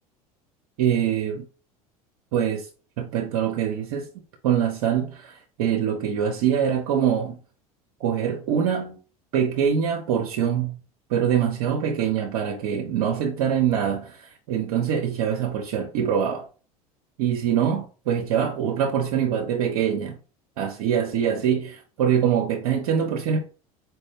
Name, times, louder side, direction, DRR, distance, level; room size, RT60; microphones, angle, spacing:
voice 1, 0.8-1.5 2.3-2.7 3.0-4.1 4.4-7.4 8.0-9.0 9.3-10.8 11.1-16.5 17.2-20.2 20.6-23.4, right 8 dB, 70° right, 0.6 m, -24 dB
4.4 x 2.1 x 3.3 m
hypercardioid pair, 80°, 19 cm